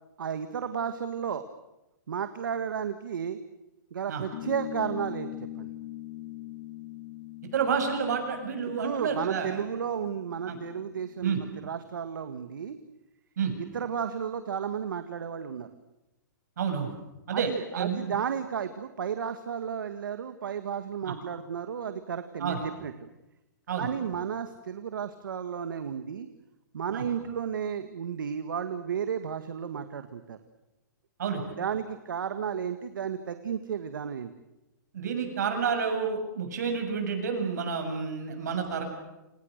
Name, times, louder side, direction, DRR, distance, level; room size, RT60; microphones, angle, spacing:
voice 1, 0.2-1.4 2.1-3.4 3.9-5.3 5.6-5.7 8.7-12.8 13.6-15.7 17.3-22.9 23.7-26.3 26.7-30.4 31.6-34.3, right 7 dB, 80° right, 9 dB, 1.9 m, -33 dB
sound 1, 4.3-11.3, left 13 dB, 35° left, 1.7 m, -42 dB
voice 2, 7.5-9.5 10.4-10.6 11.2-11.4 13.4-13.5 16.6-16.9 17.3-17.5 17.8-18.1 22.4-22.6 23.7-23.9 26.9-27.0 31.2-31.4 34.9-38.8, right 6 dB, 55° right, 4 dB, 7.4 m, -29 dB
29.5 x 27.5 x 6.7 m, 0.98 s
hypercardioid pair, 175°, 11 cm